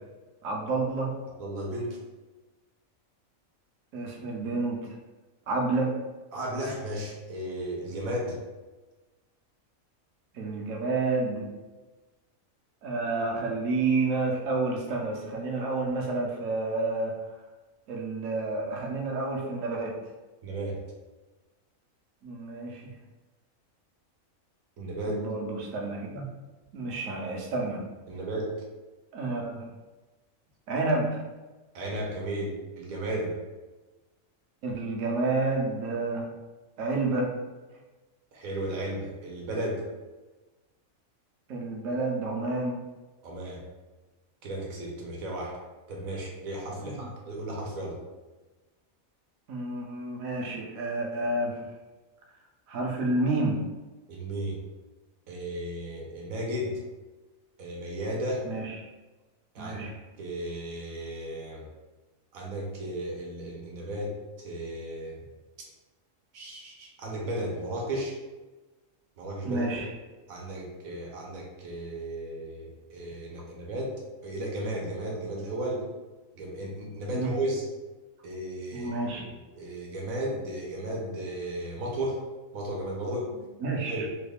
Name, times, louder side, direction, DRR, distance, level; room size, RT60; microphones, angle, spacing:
voice 1, 0.4-1.1 3.9-4.9 5.5-5.9 10.3-11.5 12.8-17.3 17.9-20.0 22.2-22.9 25.1-26.3 26.7-27.8 29.1-29.6 30.7-31.2 34.6-36.3 36.8-37.3 41.5-42.8 46.8-46.9 49.5-51.6 52.7-53.6 58.4-58.8 59.6-59.9 69.4-69.9 77.1-77.3 78.7-79.3 83.6-84.1, right 3 dB, 70° right, 0 dB, 1.0 m, -29 dB
voice 2, 1.4-2.0 6.3-8.4 20.4-20.8 24.8-25.2 28.1-28.5 31.7-33.3 38.3-39.8 43.2-43.6 44.4-45.6 45.9-48.0 54.1-54.6 55.3-56.8 57.6-58.5 59.5-59.8 60.2-61.7 62.3-65.2 66.3-68.1 69.2-70.0 70.3-73.9 74.2-75.8 76.3-77.6 78.2-78.9 79.3-82.2 82.5-83.3 83.9-84.1, right 1 dB, 90° right, -2 dB, 1.2 m, -34 dB
3.2 x 2.3 x 3.4 m, 1.2 s
omnidirectional pair, 1.4 m